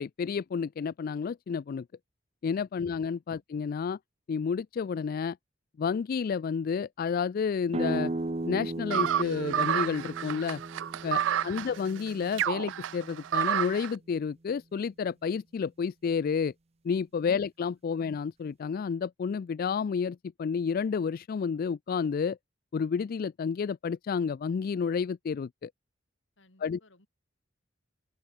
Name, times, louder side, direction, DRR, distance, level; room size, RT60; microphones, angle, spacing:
voice 1, 0.0-1.8 2.4-4.0 4.3-5.4 5.8-8.1 8.4-10.6 11.0-16.5 16.8-22.4 22.7-25.7 26.6-26.8, left 6 dB, 50° left, 0.3 m, -30 dB
sound 1, 7.7-13.3, right 2 dB, 35° right, 0.8 m, -36 dB
sound 2, 8.9-13.9, right 9 dB, 75° right, 0.3 m, -30 dB
voice 2, 11.2-11.7 17.9-18.1 26.4-27.1, left 2 dB, 80° left, 4.8 m, -62 dB
head